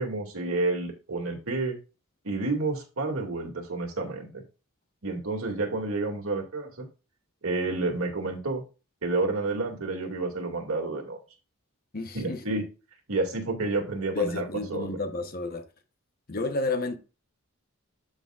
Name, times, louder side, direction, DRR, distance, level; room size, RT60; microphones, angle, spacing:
voice 1, 0.0-1.8 2.2-4.4 5.0-6.9 7.4-8.6 9.0-11.2 12.1-12.6 13.1-15.0, right 3 dB, 75° right, 2.3 m, -30 dB
voice 2, 11.9-12.4 14.1-15.6 16.3-17.0, left 3 dB, 45° left, 1.0 m, -30 dB
12.5 x 5.0 x 2.4 m
head